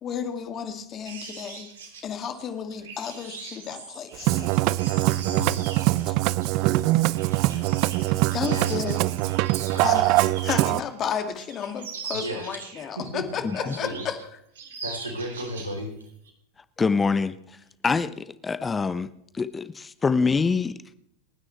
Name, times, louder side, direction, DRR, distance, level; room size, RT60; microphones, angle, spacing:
voice 1, 0.0-1.7 2.0-4.5 6.1-6.2 8.3-9.0 9.8-14.2, left 7 dB, 35° left, 2.4 m, -32 dB
sound 1, 1.0-10.9 11.2-13.1 13.5-14.2 14.5-15.8 16.1-16.3, right 5 dB, 70° right, 3.2 m, -41 dB
Musical instrument, 4.1-10.8, right 18 dB, 50° right, 0.5 m, -23 dB
voice 2, 5.1-5.6 8.5-8.8 9.7-9.9 12.1-12.6 13.0-13.2 13.5-14.0 14.8-15.9, equal, 90° right, 3.7 m, -34 dB
voice 3, 16.8-17.4 17.8-19.1 19.3-21.0, left 4 dB, 20° left, 0.8 m, -25 dB
29.0 x 9.8 x 3.3 m
hypercardioid pair, 90°, 0 cm